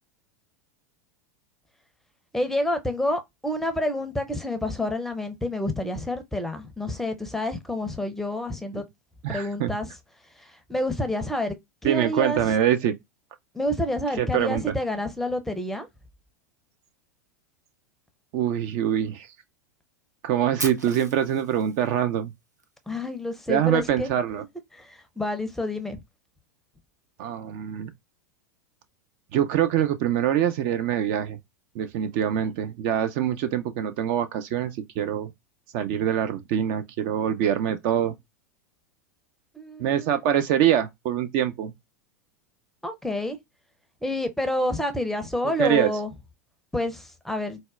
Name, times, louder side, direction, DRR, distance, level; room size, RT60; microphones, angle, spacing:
voice 1, 2.3-8.8 9.3-9.9 10.4-12.4 13.5-15.9 22.9-24.1 24.7-26.0 39.5-40.2 42.8-43.4 44.0-46.1 46.7-47.6, left 1 dB, 5° left, 0.5 m, -28 dB
voice 2, 9.2-9.7 11.8-13.0 14.2-14.7 18.3-19.3 20.2-22.3 23.5-24.4 27.2-27.9 29.3-31.4 31.7-35.3 35.7-38.1 39.8-41.7 45.4-45.9, right 10 dB, 45° right, 0.4 m, -24 dB
Fire, 20.6-22.6, right 2 dB, 90° right, 0.6 m, -37 dB
4.0 x 2.1 x 2.3 m
figure-of-eight pair, 85°, 9 cm